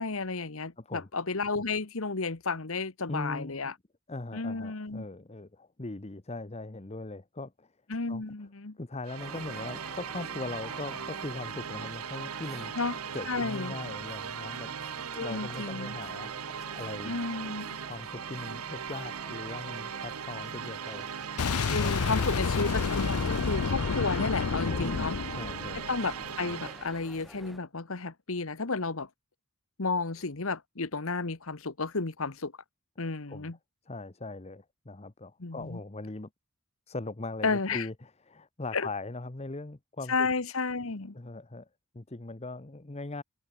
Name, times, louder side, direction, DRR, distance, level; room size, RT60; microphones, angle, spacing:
voice 1, 0.0-3.7 4.3-5.1 7.9-8.8 12.7-13.0 13.3-13.8 15.2-16.0 17.0-17.7 21.7-25.1 25.7-29.1 29.8-32.5 33.0-33.6 35.4-35.8 37.4-37.9 38.7-38.9 40.1-41.1, left 4 dB, 65° left, 1.3 m, -32 dB
voice 2, 0.8-1.1 3.1-3.7 4.1-7.7 8.1-8.2 8.8-12.7 13.1-14.8 15.2-16.3 16.7-17.2 17.9-21.1 21.8-22.3 24.8-25.8 33.3-33.5 33.9-36.3 36.9-40.3 41.1-41.7 41.9-43.2, left 2 dB, 30° left, 0.9 m, -40 dB
sound 1, 9.0-27.0, right 7 dB, 80° right, 1.0 m, -39 dB
sound 2, 9.2-27.6, equal, ahead, 2.2 m, -51 dB
Boom, 21.4-26.2, left 5 dB, 85° left, 0.5 m, -30 dB
head